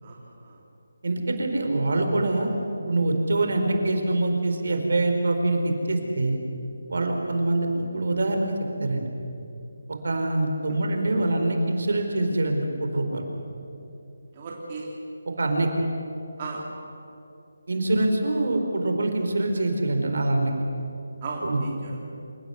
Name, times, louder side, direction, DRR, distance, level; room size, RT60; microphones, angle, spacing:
voice 1, 0.0-0.6 10.7-10.8 14.3-15.0 16.4-16.6 21.2-22.2, right 3 dB, 25° right, -2 dB, 2.8 m, -36 dB
voice 2, 1.0-2.5 2.9-6.4 6.9-8.5 8.8-9.0 10.0-13.2 15.4-15.7 17.7-20.5 21.4-21.6, right 2 dB, 60° right, 4 dB, 4.4 m, -24 dB
27.5 x 17.5 x 8.1 m, 2.7 s
figure-of-eight pair, 170°, 0 cm